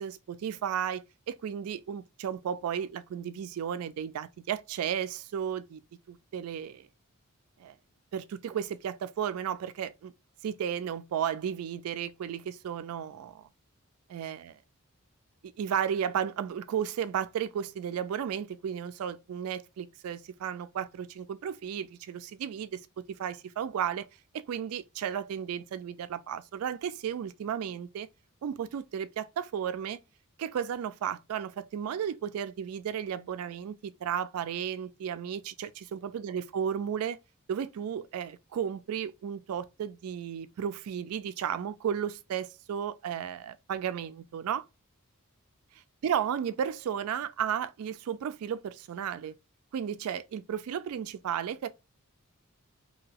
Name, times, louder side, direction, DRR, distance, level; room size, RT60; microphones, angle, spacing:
voice 1, 0.0-5.8 6.1-6.9 7.6-7.7 8.1-10.1 10.4-13.5 14.1-14.6 15.6-22.8 23.2-24.1 24.3-28.1 28.4-30.0 30.4-37.2 37.5-44.7 46.0-49.3 49.7-51.7, right 8 dB, 75° right, 0.3 m, -34 dB
2.9 x 2.7 x 2.8 m
head